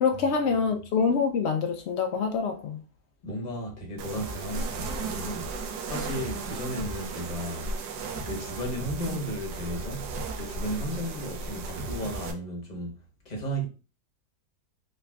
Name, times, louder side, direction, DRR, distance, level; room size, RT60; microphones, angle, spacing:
voice 1, 0.0-2.8, left 5 dB, 85° left, 0.5 m, -25 dB
voice 2, 3.2-5.5 5.9-7.7 8.3-13.0 13.2-13.7, equal, 35° left, 0.9 m, -34 dB
sound 1, 4.0-12.3, right 3 dB, 85° right, 1.2 m, -35 dB
sound 2, 4.2-4.4 4.8-5.5 5.8-6.4 6.8-7.5 7.8-8.4 8.8-9.5 9.8-10.4 10.8-12.2, right 3 dB, 55° right, 1.3 m, -41 dB
3.9 x 3.2 x 2.3 m
omnidirectional pair, 1.7 m